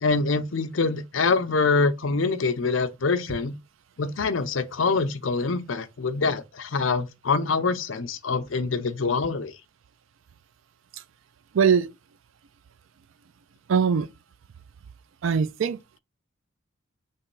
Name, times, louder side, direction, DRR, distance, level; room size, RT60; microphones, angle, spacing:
voice 1, 0.0-3.5 4.0-9.5, left 4 dB, 70° left, 0.6 m, -25 dB
voice 2, 11.5-11.9 13.7-14.1 15.2-15.8, right 6 dB, 70° right, 0.4 m, -21 dB
3.4 x 3.0 x 4.6 m
head